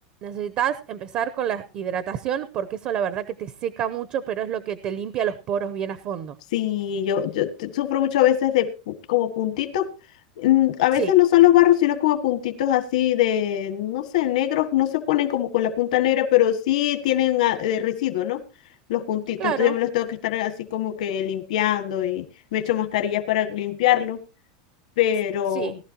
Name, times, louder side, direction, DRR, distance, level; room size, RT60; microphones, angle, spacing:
voice 1, 0.2-6.4 10.9-11.1 19.4-19.7 25.5-25.7, right 9 dB, 35° right, 15 dB, 0.7 m, -28 dB
voice 2, 6.5-9.9 10.4-18.4 18.9-22.2 22.5-24.2 25.0-25.8, left 13 dB, 75° left, 8 dB, 1.6 m, -22 dB
18.5 x 12.0 x 2.9 m, 0.31 s
supercardioid pair, 165°, 4 cm